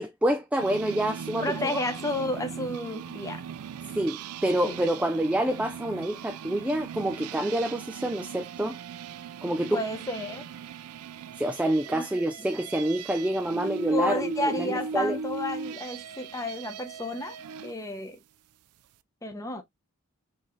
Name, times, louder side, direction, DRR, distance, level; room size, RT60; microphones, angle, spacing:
voice 1, 0.0-1.5 3.9-8.8 9.4-9.8 11.4-15.2, right 1 dB, 5° right, 0.3 m, -27 dB
sound 1, 0.6-17.7, right 6 dB, 85° right, 0.4 m, -39 dB
voice 2, 1.4-3.4 4.6-4.8 9.7-10.5 11.9-12.2 13.9-17.4 17.6-18.2 19.2-19.6, left 2 dB, 15° left, 0.7 m, -32 dB
4.6 x 2.7 x 3.0 m
head